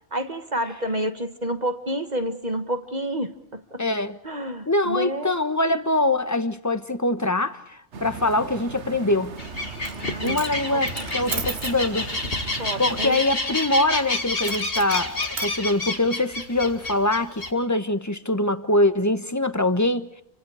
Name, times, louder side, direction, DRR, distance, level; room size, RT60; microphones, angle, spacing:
voice 1, 0.1-3.8 4.2-5.3 9.9-10.8 12.6-13.2, right 1 dB, 40° right, 1.6 m, -29 dB
voice 2, 3.8-4.2 4.7-9.3 10.2-12.1 12.6-20.2, left 2 dB, 15° left, 1.2 m, -23 dB
sound 1, 7.9-13.1, right 5 dB, 80° right, 1.5 m, -38 dB
sound 2, 9.4-17.5, left 2 dB, 55° left, 2.7 m, -29 dB
Coin (dropping), 9.7-10.0 10.2-11.8 14.4-15.5, right 5 dB, 65° right, 1.8 m, -35 dB
29.5 x 25.5 x 4.9 m
omnidirectional pair, 1.2 m